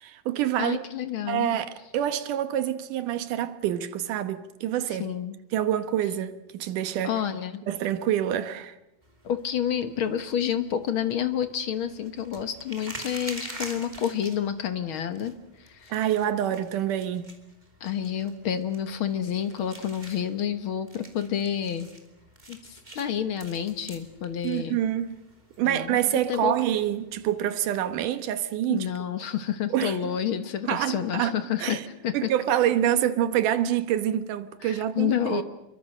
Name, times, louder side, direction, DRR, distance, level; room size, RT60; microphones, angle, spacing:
voice 1, 0.0-0.8 1.3-5.1 5.5-7.1 7.7-8.8 15.9-17.4 24.4-25.2 25.6-28.9 29.7-30.1 30.7-31.3 31.6-31.9 32.1-35.4, right 11 dB, 75° right, 2.7 m, -26 dB
voice 2, 0.6-1.5 5.0-5.4 7.0-7.6 9.2-16.0 17.8-21.9 22.5-24.8 25.6-26.0 26.3-26.6 28.7-32.3 34.6-35.4, left 9 dB, 60° left, 1.4 m, -29 dB
sound 1, 9.0-27.5, right 2 dB, 15° right, 2.6 m, -47 dB
27.5 x 23.5 x 6.5 m
omnidirectional pair, 3.8 m